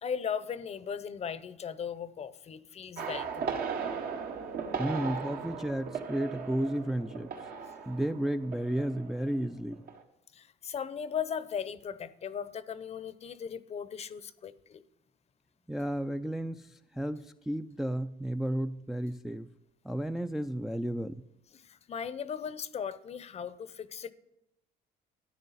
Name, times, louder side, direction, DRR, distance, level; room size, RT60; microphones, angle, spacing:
voice 1, 0.0-3.6 10.3-14.8 21.5-24.1, left 7 dB, 40° left, 15 dB, 0.6 m, -37 dB
sound 1, 3.0-9.4 9.7-10.0, right 6 dB, 65° right, 1.3 m, -37 dB
voice 2, 4.8-7.3 7.9-9.8 15.7-19.5 19.8-21.2, right 1 dB, ahead, 7 dB, 0.3 m, -33 dB
13.5 x 9.6 x 4.1 m, 0.86 s
cardioid pair, 110°, 17 cm